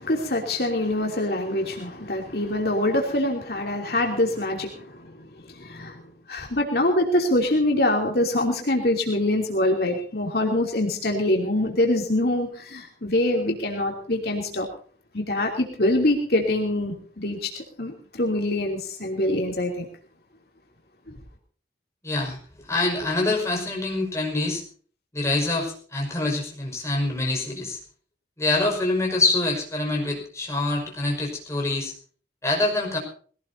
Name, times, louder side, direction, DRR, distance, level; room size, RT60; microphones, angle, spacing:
voice 1, 0.0-5.2 5.5-6.0 6.3-14.7 15.1-17.5 17.8-19.9 21.1-21.2, left 1 dB, 60° left, 1 dB, 3.0 m, -24 dB
voice 2, 22.0-22.4 22.7-24.6 25.1-27.8 28.4-31.9 32.4-33.0, left 2 dB, 15° left, -1 dB, 5.5 m, -25 dB
22.0 x 17.5 x 2.8 m, 0.44 s
head